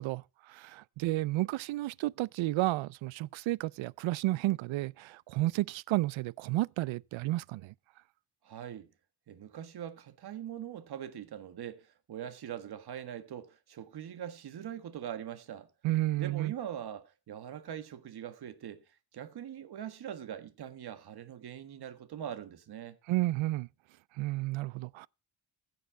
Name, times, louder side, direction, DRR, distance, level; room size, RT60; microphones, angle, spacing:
voice 1, 0.0-7.7 15.8-16.5 23.1-23.7 24.2-25.1, right 17 dB, 85° right, 0.5 m, -32 dB
voice 2, 8.4-8.9 9.3-15.7 16.2-18.8 19.1-23.0, right 9 dB, 55° right, 1.6 m, -42 dB
16.0 x 6.7 x 4.7 m
wide cardioid pair, 180°, 45 cm